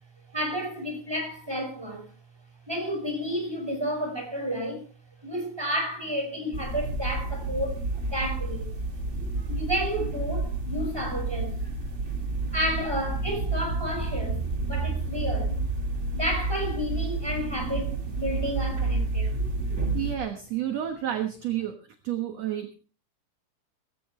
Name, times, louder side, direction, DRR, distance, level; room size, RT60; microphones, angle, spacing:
voice 1, 0.3-2.1 2.7-4.8 5.2-8.7 9.5-11.6 12.5-15.6 16.1-19.3, equal, 5° right, 5.4 m, -31 dB
sound 1, 6.5-20.2, right 3 dB, 25° right, 1.7 m, -30 dB
voice 2, 19.9-21.8 22.0-22.7, right 11 dB, 55° right, 2.1 m, -30 dB
18.5 x 16.5 x 3.3 m
omnidirectional pair, 4.3 m